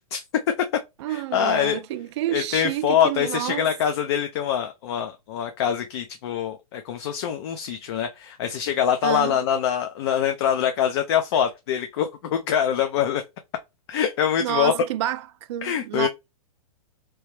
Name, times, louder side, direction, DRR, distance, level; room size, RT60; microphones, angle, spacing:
voice 1, 0.1-0.5 1.1-1.8 2.3-13.2 13.9-14.7 15.6-16.1, left 9 dB, 45° left, 0.5 m, -24 dB
voice 2, 1.0-3.7 9.0-9.4 14.4-16.1, right 13 dB, 45° right, 0.4 m, -29 dB
3.2 x 3.0 x 3.0 m
hypercardioid pair, 150°, 20 cm